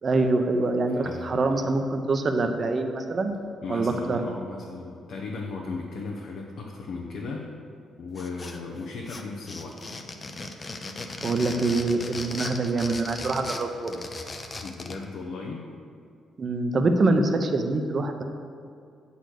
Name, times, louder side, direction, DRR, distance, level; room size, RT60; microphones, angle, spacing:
voice 1, 0.0-3.3 3.7-4.2 11.2-14.0 16.4-18.2, right 3 dB, 40° right, 6 dB, 0.7 m, -25 dB
voice 2, 0.9-1.7 3.6-7.5 8.0-9.8 14.6-15.6, left 4 dB, 70° left, -2 dB, 0.9 m, -36 dB
sound 1, 8.2-8.8 9.1-15.0, left 3 dB, 30° left, 0.6 m, -37 dB
8.0 x 4.1 x 6.4 m, 2.4 s
cardioid pair, 90°, 0 cm